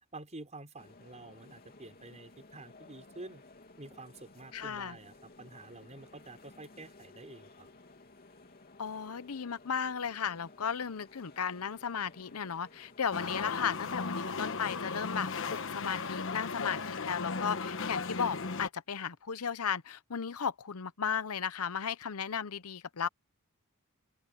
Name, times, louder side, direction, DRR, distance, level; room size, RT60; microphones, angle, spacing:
voice 1, 0.1-3.4 3.8-7.7, right 2 dB, 35° right, 5.2 m, -49 dB
sound 1, 0.8-15.5, left 2 dB, 45° left, 3.0 m, -56 dB
voice 2, 4.5-5.0 8.8-23.1, left 7 dB, 85° left, 0.8 m, -35 dB
sound 2, 13.1-18.7, left 4 dB, 65° left, 1.2 m, -36 dB
open air
head